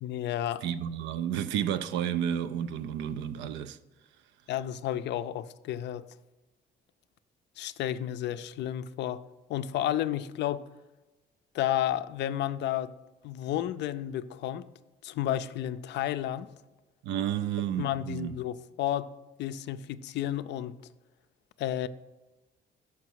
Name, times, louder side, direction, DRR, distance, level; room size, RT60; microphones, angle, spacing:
voice 1, 0.0-0.7 4.5-6.1 7.6-9.2 9.5-10.6 11.5-12.9 13.2-14.7 15.0-16.5 17.8-19.1 19.4-20.7 21.6-21.9, left 12 dB, 70° left, 0.4 m, -31 dB
voice 2, 0.6-3.8 17.0-18.4, right 9 dB, 90° right, 0.4 m, -31 dB
6.1 x 5.7 x 4.6 m
cardioid pair, 90°, 19 cm